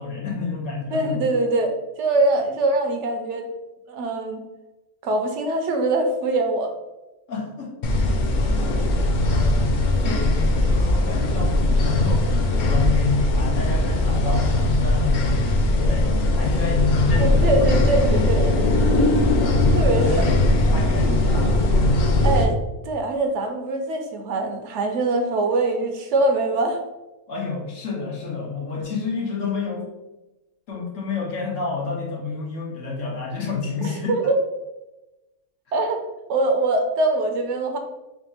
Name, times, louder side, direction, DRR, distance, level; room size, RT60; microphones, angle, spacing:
voice 1, 0.0-1.2 7.3-7.7 8.0-8.8 9.3-17.7 18.8-21.7 27.3-29.8 30.7-34.3, left 4 dB, 80° left, -2 dB, 1.4 m, -29 dB
voice 2, 0.9-3.5 3.9-4.4 5.0-6.7 17.1-18.5 19.7-20.2 21.1-21.2 22.2-22.6 22.8-26.8 33.8-34.4 35.7-36.0 36.3-37.8, right 2 dB, 75° right, 5 dB, 0.9 m, -23 dB
sound 1, 7.8-22.4, left 2 dB, 60° left, 0.5 m, -20 dB
3.5 x 2.4 x 4.1 m, 1.0 s
omnidirectional pair, 1.3 m